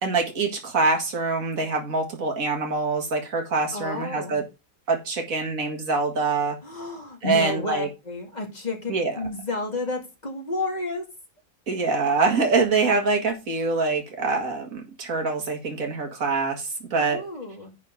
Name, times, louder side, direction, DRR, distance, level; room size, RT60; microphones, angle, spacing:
voice 1, 0.0-4.4 4.9-6.6 7.2-7.9 8.9-9.1 11.7-17.2, right 4 dB, 80° right, 2.3 m, -24 dB
voice 2, 3.7-4.4 6.6-11.0 16.9-17.7, left 2 dB, 30° left, 2.4 m, -31 dB
10.5 x 4.3 x 5.2 m
omnidirectional pair, 1.4 m